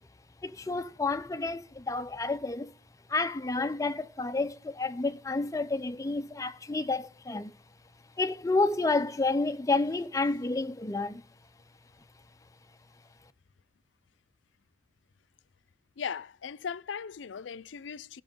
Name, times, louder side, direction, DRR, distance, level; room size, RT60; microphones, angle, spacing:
voice 1, 0.4-2.7 3.1-7.5 8.2-11.2, left 3 dB, 20° left, 0.5 m, -30 dB
voice 2, 16.0-18.2, left 6 dB, 85° left, 0.4 m, -38 dB
14.5 x 6.2 x 5.2 m
head